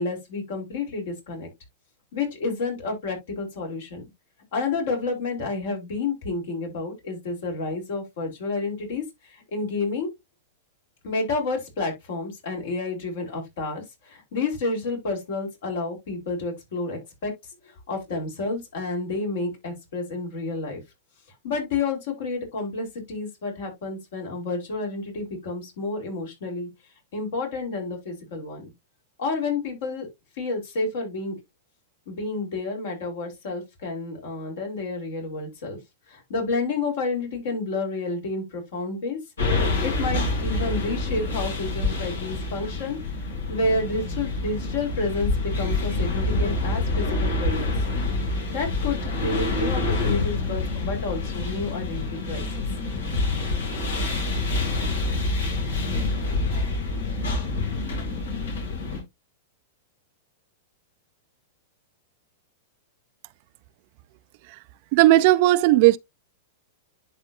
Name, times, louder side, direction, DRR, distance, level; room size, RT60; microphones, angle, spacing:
voice 1, 0.0-1.5 2.1-4.0 4.5-10.1 11.0-17.3 17.6-20.8 21.4-26.7 27.1-28.7 29.2-30.1 30.4-31.4 32.1-35.8 36.1-39.2 39.8-43.0 43.5-47.7 48.5-52.6, left 3 dB, 70° left, 4.3 m, -30 dB
sound 1, 39.4-59.0, left 2 dB, 85° left, 3.7 m, -27 dB
voice 2, 64.9-66.0, right 16 dB, 55° right, 0.5 m, -16 dB
11.0 x 4.0 x 2.7 m
hypercardioid pair, 115°, 0 cm